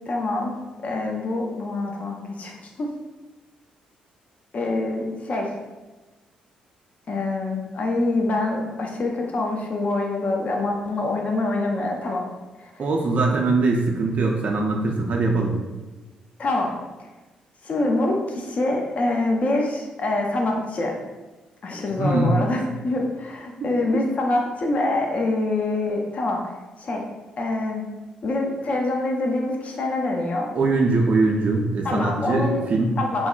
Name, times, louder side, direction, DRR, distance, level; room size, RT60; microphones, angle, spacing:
voice 1, 0.1-0.5 0.8-2.9 4.5-5.5 7.1-12.2 12.6-12.7 16.4-16.7 17.6-20.9 21.6-26.4 26.8-27.0 27.4-27.8 28.2-30.5 31.8-32.6 33.0-33.3, left 2 dB, 45° left, 1 dB, 0.4 m, -25 dB
voice 2, 12.8-15.6 22.0-22.3 23.6-23.8 30.6-33.0, right 3 dB, 45° right, 0 dB, 0.3 m, -22 dB
3.2 x 2.0 x 2.3 m, 1.2 s
figure-of-eight pair, 40°, 3 cm